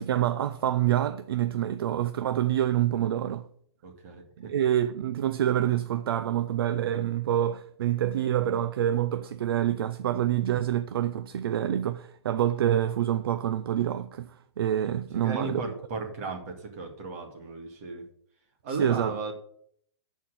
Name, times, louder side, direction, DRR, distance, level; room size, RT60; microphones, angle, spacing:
voice 1, 0.0-3.5 4.4-15.7 18.7-19.2, right 11 dB, 55° right, 0.6 m, -27 dB
voice 2, 3.8-4.5 15.1-18.1 18.6-19.3, right 3 dB, 30° right, 2.2 m, -35 dB
13.0 x 4.5 x 7.6 m
hypercardioid pair, 175°, 15 cm